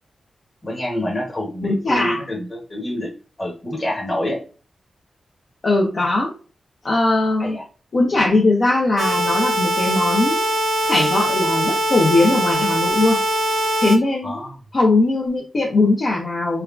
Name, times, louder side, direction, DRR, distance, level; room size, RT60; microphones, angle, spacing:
voice 1, 0.6-3.1 3.4-4.4 7.4-7.6 14.2-14.6, left 1 dB, 25° left, -1 dB, 1.2 m, -27 dB
voice 2, 1.6-2.2 5.6-6.3 6.8-7.6 7.9-10.4 10.9-13.2 13.8-14.3 14.7-16.6, left 2 dB, 45° left, -3 dB, 0.6 m, -19 dB
sound 1, 9.0-14.0, right 1 dB, 90° right, 0.6 m, -21 dB
3.2 x 2.4 x 2.4 m, 0.37 s
wide cardioid pair, 140°, 0 cm